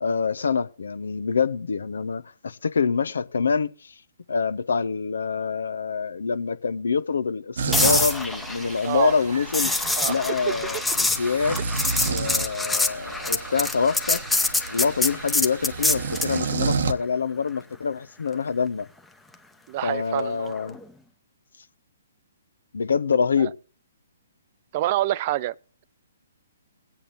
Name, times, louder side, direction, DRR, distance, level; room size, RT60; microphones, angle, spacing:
voice 1, 0.0-3.9 4.3-9.7 10.1-11.6 12.1-14.2 14.7-18.9 19.8-20.8 22.7-23.5, left 5 dB, 75° left, 0.7 m, -26 dB
sound 1, 7.6-16.9, right 5 dB, 65° right, 0.9 m, -31 dB
sound 2, 7.7-16.4 20.6-20.8, left 2 dB, 5° left, 0.8 m, -26 dB
voice 2, 19.7-20.5 23.4-23.5 24.7-25.5, right 14 dB, 40° right, 0.4 m, -26 dB
22.0 x 8.6 x 2.6 m
hypercardioid pair, 135°, 0 cm